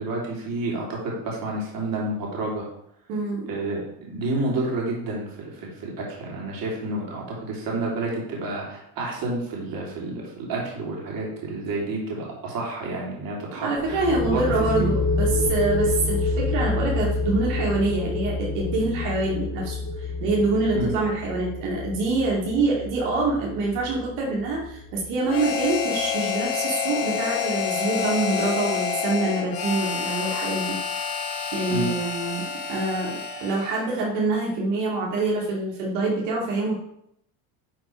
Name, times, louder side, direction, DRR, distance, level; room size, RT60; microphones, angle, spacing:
voice 1, 0.0-2.7 3.5-14.9 20.7-20.9 31.7-31.9, right 2 dB, 50° right, -2 dB, 3.1 m, -30 dB
voice 2, 3.1-3.5 13.5-30.8 31.5-36.7, right 3 dB, 75° right, -3 dB, 2.5 m, -25 dB
sound 1, 13.8-25.3, left 3 dB, 20° left, 1.5 m, -28 dB
Harmonica, 25.3-33.9, left 7 dB, 50° left, 2.5 m, -28 dB
10.5 x 4.4 x 4.6 m, 0.75 s
cardioid pair, 145°, 45 cm